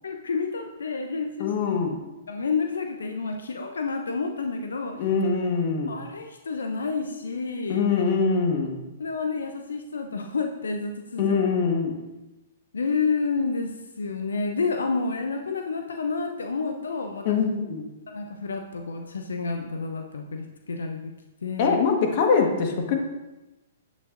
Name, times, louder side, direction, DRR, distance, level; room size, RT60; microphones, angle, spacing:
voice 1, 0.0-1.5 2.3-5.0 5.9-7.8 9.0-11.4 12.7-17.4 18.1-21.1 21.4-21.8, left 4 dB, 80° left, 4 dB, 0.7 m, -29 dB
voice 2, 1.4-2.0 5.0-6.0 7.7-8.8 11.2-12.0 17.2-17.9 21.6-22.9, left 5 dB, 50° left, 3 dB, 1.5 m, -23 dB
9.3 x 7.7 x 2.6 m, 1.0 s
hypercardioid pair, 120°, 0 cm